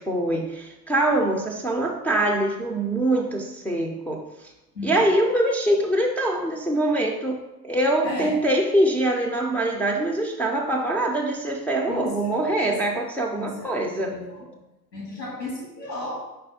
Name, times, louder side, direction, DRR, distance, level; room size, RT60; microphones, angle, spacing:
voice 1, 0.1-4.2 4.8-7.4 7.6-14.2, right 1 dB, 5° left, -3 dB, 0.4 m, -23 dB
voice 2, 4.7-5.1 8.0-8.4 11.9-12.9 13.4-14.7 14.9-16.3, left 2 dB, 85° left, -5 dB, 2.0 m, -34 dB
5.2 x 3.4 x 5.2 m, 0.94 s
figure-of-eight pair, 75°, 49 cm